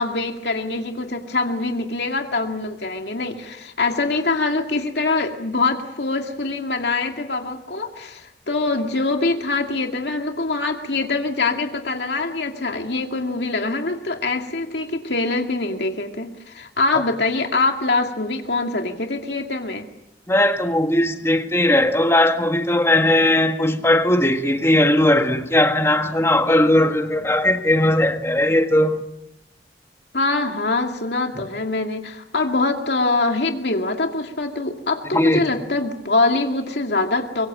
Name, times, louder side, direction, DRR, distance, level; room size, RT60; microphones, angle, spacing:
voice 1, 0.0-19.9 30.1-37.5, left 3 dB, 75° left, 2.3 m, -24 dB
voice 2, 20.3-29.0 31.4-31.5 35.1-35.5, left 1 dB, 15° left, 1.6 m, -18 dB
24.5 x 23.5 x 7.6 m
head